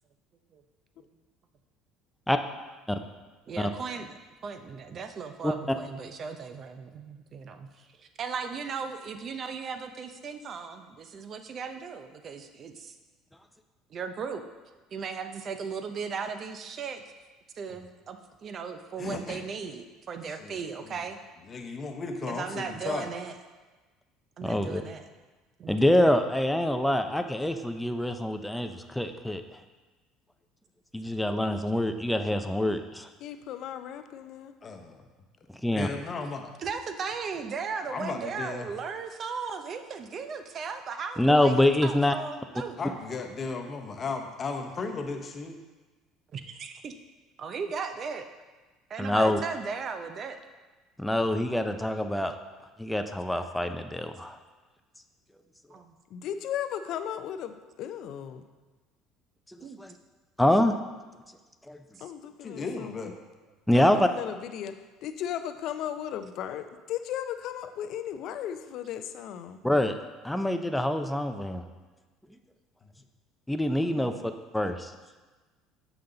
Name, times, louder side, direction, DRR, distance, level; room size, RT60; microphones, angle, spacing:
voice 1, 3.5-7.7 8.0-13.0 13.9-14.4 14.9-17.0 17.5-21.2 22.3-23.3 24.4-25.1 25.6-25.8 36.6-42.8 46.3-46.9 47.4-48.3 48.9-50.4 55.7-55.9 59.6-59.8 62.0-62.1, right 5 dB, 40° right, 7 dB, 0.7 m, -37 dB
voice 2, 19.0-19.4 20.4-20.6 20.9-21.0 21.5-23.1 34.6-35.1 35.7-36.5 37.9-38.7 42.8-45.5 62.4-63.1, left 4 dB, 35° left, 4 dB, 0.9 m, -35 dB
voice 3, 24.4-24.8 25.7-29.4 30.9-33.1 35.6-35.9 41.2-42.1 49.0-49.4 51.0-52.3 52.8-54.4 59.5-59.9 60.4-60.7 61.7-61.8 63.7-64.1 69.6-69.9 70.2-71.6 73.5-74.9, left 1 dB, 5° left, 7 dB, 0.5 m, -25 dB
voice 4, 33.2-34.5 56.1-58.4 62.0-62.9 63.7-69.6 73.8-74.2, left 10 dB, 60° left, 10 dB, 0.5 m, -36 dB
7.0 x 5.7 x 3.9 m, 1.3 s
supercardioid pair, 100°, 0 cm